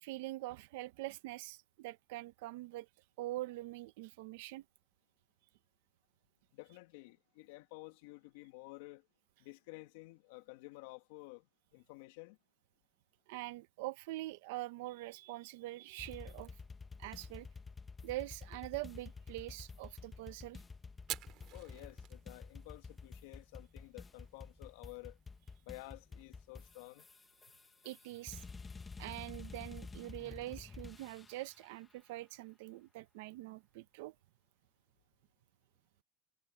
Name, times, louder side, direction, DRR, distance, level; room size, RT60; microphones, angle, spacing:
voice 1, 0.0-2.9 3.2-4.6 13.3-16.5 17.0-17.5 18.0-20.6 27.8-28.4 29.0-34.1, right 17 dB, 85° right, 1.0 m, -44 dB
voice 2, 6.5-9.1 9.4-11.4 11.7-12.4 21.5-25.2 25.6-27.0, left 22 dB, 85° left, 2.3 m, -52 dB
sound 1, 16.0-31.6, left 4 dB, 15° left, 1.3 m, -50 dB
Fire, 21.0-30.2, right 14 dB, 45° right, 3.0 m, -54 dB
cardioid pair, 160°, 0 cm